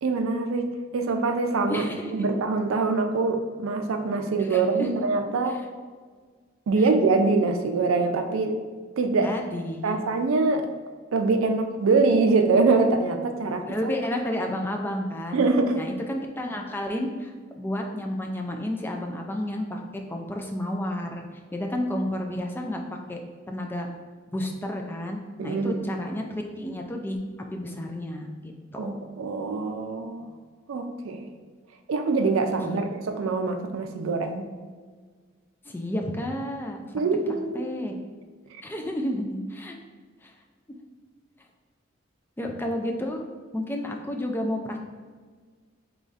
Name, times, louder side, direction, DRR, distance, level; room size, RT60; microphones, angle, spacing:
voice 1, 0.0-1.8 2.1-5.6 6.7-8.6 9.0-9.3 9.8-10.7 11.1-13.7 15.3-15.8 25.4-25.8 28.8-30.3 30.7-31.3 31.9-34.4 36.9-37.6, right 3 dB, 85° right, 6 dB, 0.4 m, -24 dB
voice 2, 1.7-2.3 4.4-4.9 9.2-10.0 13.6-15.4 15.7-19.8 20.1-21.2 21.5-22.8 23.1-23.2 23.5-23.9 24.3-27.2 27.5-29.0 32.7-32.8 35.7-36.8 37.5-37.9 38.6-39.8 40.2-40.3 42.4-43.2 43.5-44.8, left 1 dB, 10° left, 2 dB, 0.3 m, -31 dB
3.9 x 3.1 x 2.4 m, 1.5 s
head